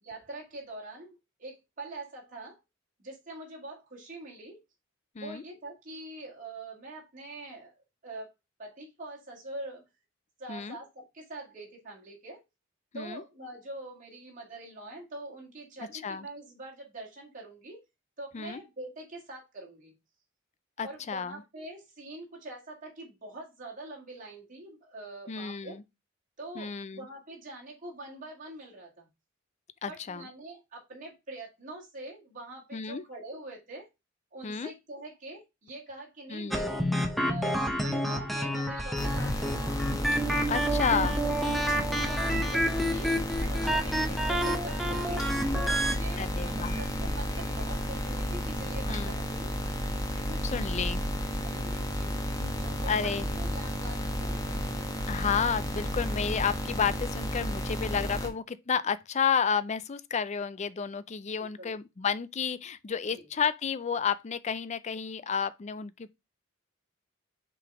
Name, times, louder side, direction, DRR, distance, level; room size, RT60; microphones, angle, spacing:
voice 1, 0.0-2.6 3.0-4.6 5.2-8.3 8.6-9.8 10.4-12.4 12.9-17.8 18.2-19.9 20.8-25.8 26.4-29.1 29.8-33.9 34.3-36.9 37.3-39.8 41.2-41.6 41.9-45.3 45.7-49.5 50.1-50.5 51.0-55.1 61.3-61.7 63.1-63.3, right 2 dB, 40° right, 2.1 m, -44 dB
voice 2, 20.8-21.4 25.3-25.8 26.6-27.1 29.8-30.2 32.7-33.0 34.4-34.7 36.3-36.6 40.5-41.2 46.2-46.8 48.9-49.1 50.4-51.0 52.4-52.5 52.9-53.3 55.1-66.2, left 6 dB, 35° left, 0.4 m, -31 dB
sound 1, 36.5-45.9, equal, ahead, 0.9 m, -29 dB
sound 2, 39.0-58.3, equal, 15° left, 1.2 m, -32 dB
5.8 x 3.9 x 4.8 m
head